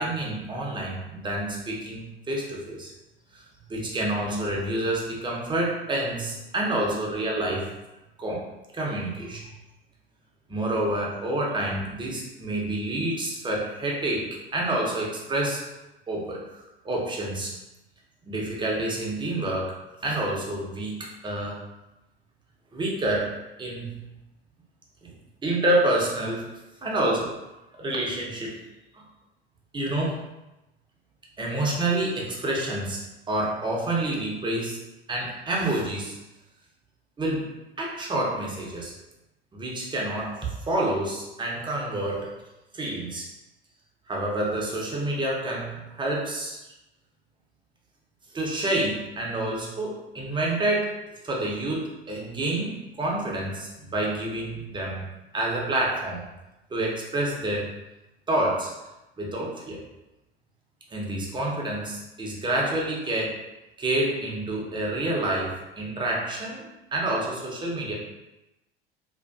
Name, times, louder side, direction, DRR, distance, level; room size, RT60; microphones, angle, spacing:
voice 1, 0.0-2.9 3.7-7.7 8.2-8.4 8.7-9.4 10.5-15.6 16.1-16.4 16.8-17.5 18.2-19.7 20.0-21.0 21.2-21.6 22.7-23.3 23.6-24.0 25.0-25.1 25.4-26.5 26.8-27.3 27.8-28.6 28.9-29.0 29.7-30.2 31.4-33.0 33.3-34.8 35.1-36.2 37.2-37.5 37.8-38.9 39.5-40.4 40.7-42.3 42.7-43.3 44.1-46.6 48.3-50.9 51.2-55.1 55.3-56.3 56.7-57.7 58.3-58.7 59.2-59.8 60.9-63.3 63.8-66.6 66.9-67.9, right 1 dB, 15° right, -3 dB, 0.7 m, -28 dB
2.5 x 2.4 x 2.3 m, 0.98 s
figure-of-eight pair, 70°, 29 cm